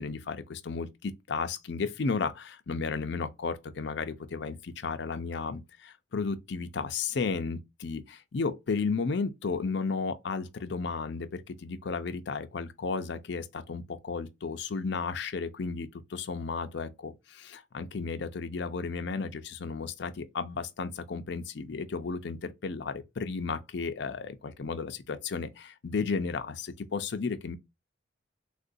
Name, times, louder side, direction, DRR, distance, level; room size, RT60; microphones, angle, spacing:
voice 1, 0.0-27.6, left 4 dB, 70° left, 0.5 m, -33 dB
3.7 x 2.5 x 2.5 m
head